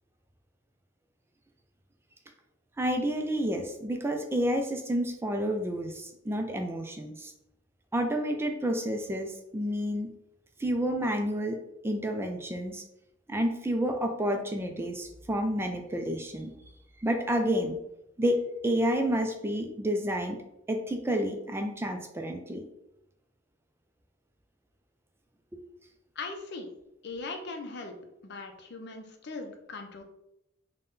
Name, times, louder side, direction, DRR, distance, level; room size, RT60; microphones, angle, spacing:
voice 1, 2.8-7.3 7.9-10.1 10.6-11.6 11.8-12.8 13.3-16.5 17.0-17.8 18.2-18.4 18.6-20.4 20.7-22.6 25.5-25.6, equal, 15° right, 3 dB, 0.3 m, -29 dB
voice 2, 26.2-26.7 27.0-27.9 28.2-30.0, left 3 dB, 60° left, 5 dB, 0.6 m, -39 dB
3.9 x 2.2 x 3.6 m, 0.84 s
head